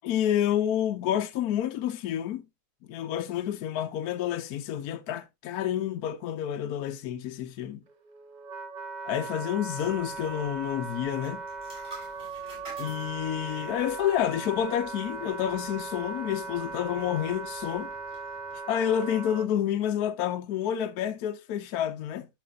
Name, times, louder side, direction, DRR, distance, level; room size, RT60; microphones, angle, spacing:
voice 1, 0.0-2.5 2.8-7.8 9.0-11.4 12.8-17.9 18.7-22.3, left 10 dB, 70° left, 1.1 m, -29 dB
Wind instrument woodwind instrument, 7.9-19.5, right 4 dB, 85° right, 0.4 m, -38 dB
sound 1, 9.7-18.6, right 1 dB, 35° right, 6.3 m, -52 dB
11.5 x 6.7 x 2.3 m
omnidirectional pair, 1.8 m